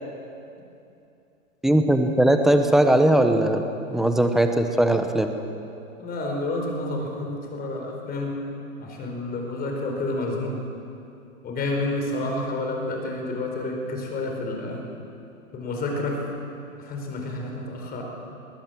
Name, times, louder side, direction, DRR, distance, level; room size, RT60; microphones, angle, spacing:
voice 1, 1.6-3.6 3.9-5.3, right 1 dB, ahead, 6 dB, 1.0 m, -19 dB
voice 2, 6.0-8.4 8.8-10.6 11.4-14.8 15.5-16.2 16.8-18.0, left 2 dB, 20° left, 1 dB, 4.5 m, -29 dB
21.0 x 18.0 x 7.6 m, 2.7 s
hypercardioid pair, 135°, 41 cm